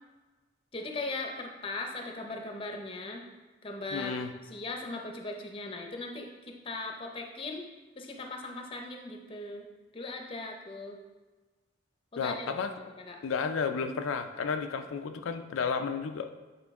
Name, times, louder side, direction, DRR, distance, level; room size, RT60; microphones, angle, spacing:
voice 1, 0.7-3.2 3.6-6.3 6.6-7.7 8.0-9.6 9.9-11.0 12.1-12.5 13.1-13.2, left 2 dB, 25° left, 2 dB, 0.6 m, -38 dB
voice 2, 3.9-4.3 12.2-12.7 13.2-16.3, left 5 dB, 85° left, 7 dB, 0.4 m, -32 dB
8.2 x 3.6 x 3.5 m, 1.3 s
head